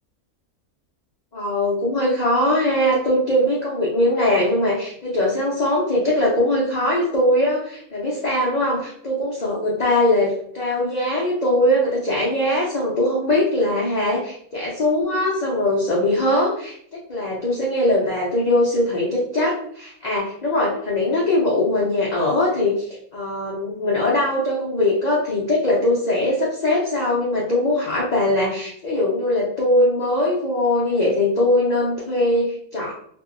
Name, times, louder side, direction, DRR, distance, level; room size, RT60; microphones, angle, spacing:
voice 1, 1.3-32.9, left 1 dB, 85° left, -5 dB, 0.3 m, -21 dB
2.7 x 2.6 x 2.5 m, 0.66 s
omnidirectional pair, 1.6 m